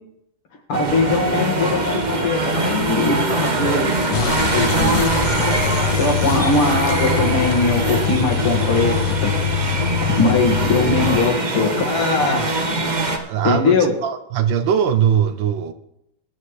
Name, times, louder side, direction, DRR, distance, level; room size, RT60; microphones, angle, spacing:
voice 1, 0.7-5.5 6.0-9.3 10.2-12.5 13.4-13.9, left 3 dB, 85° left, 2 dB, 2.7 m, -21 dB
sound 1, 0.7-13.2, right 2 dB, 40° right, 0.6 m, -22 dB
sound 2, 4.1-11.2, left 9 dB, 65° left, 1.4 m, -24 dB
Piano, 4.9-7.2 8.3-8.5, right 2 dB, 35° left, 3.5 m, -41 dB
voice 2, 13.3-13.8 14.0-15.7, right 8 dB, 70° right, 10 dB, 1.3 m, -20 dB
20.5 x 9.2 x 3.2 m, 0.82 s
omnidirectional pair, 2.3 m